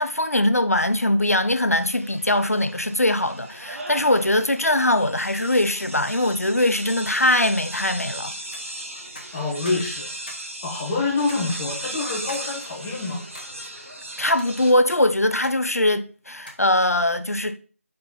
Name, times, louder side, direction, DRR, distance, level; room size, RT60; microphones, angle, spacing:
voice 1, 0.0-8.3 14.2-17.5, left 1 dB, 85° left, 0.7 m, -21 dB
sound 1, 1.8-14.7, right 1 dB, 60° right, 1.7 m, -37 dB
sound 2, 8.4-8.6 9.2-10.5 10.8-10.9 11.3-11.4 12.3-12.5 12.9-13.5 14.2-14.5 14.9-15.6 15.9-16.0 16.5-16.7, left 2 dB, 35° left, 1.2 m, -44 dB
voice 2, 9.3-10.1 10.3-13.2, left 3 dB, 5° left, 0.5 m, -27 dB
5.1 x 4.3 x 5.2 m
figure-of-eight pair, 165°, 8 cm